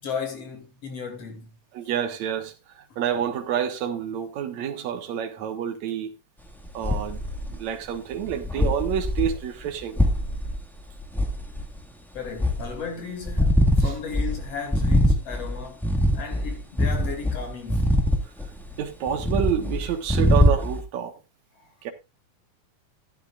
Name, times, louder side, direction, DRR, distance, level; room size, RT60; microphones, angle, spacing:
voice 1, 0.0-1.5 12.1-18.0, left 5 dB, 55° left, 3.4 m, -35 dB
voice 2, 1.7-6.1 6.7-7.2 7.5-10.0 13.8-13.9 18.8-21.1 21.8-21.9, right 9 dB, 70° right, 2.6 m, -28 dB
sound 1, 6.6-7.6 8.1-11.8 12.2-12.8 13.2-18.8 19.1-20.8, left 1 dB, ahead, 0.8 m, -23 dB
14.0 x 10.5 x 2.4 m
omnidirectional pair, 3.4 m